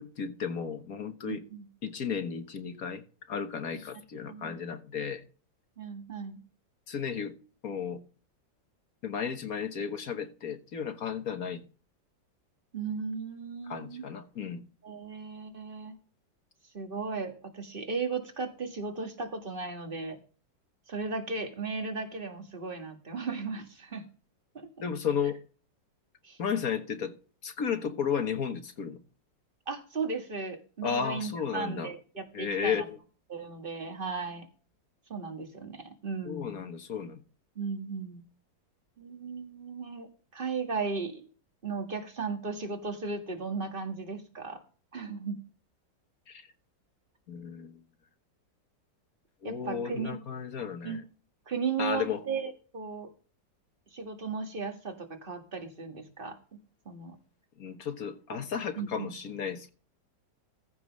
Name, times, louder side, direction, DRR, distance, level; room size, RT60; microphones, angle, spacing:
voice 1, 0.0-1.4 1.8-5.2 6.9-7.3 7.6-8.0 9.0-11.6 13.7-14.6 24.8-25.4 26.4-27.1 27.4-29.0 30.8-31.9 32.3-33.0 36.2-37.2 46.3-46.5 47.3-47.8 49.4-51.0 51.8-52.2 57.6-59.7, left 7 dB, 55° left, 1.6 m, -33 dB
voice 2, 1.2-1.7 3.7-3.8 4.3-4.6 5.8-6.4 12.7-14.0 14.8-15.9 16.7-20.2 20.9-24.1 24.5-24.7 26.2-26.4 29.7-32.9 33.3-34.5 35.1-36.6 37.6-38.2 39.0-41.3 41.6-44.6 44.9-45.4 49.4-50.2 50.8-51.0 51.5-53.1 53.9-56.6 56.9-57.2 58.3-58.4 58.8-59.1, right 4 dB, 30° right, 2.1 m, -36 dB
15.0 x 5.4 x 5.4 m
omnidirectional pair, 2.0 m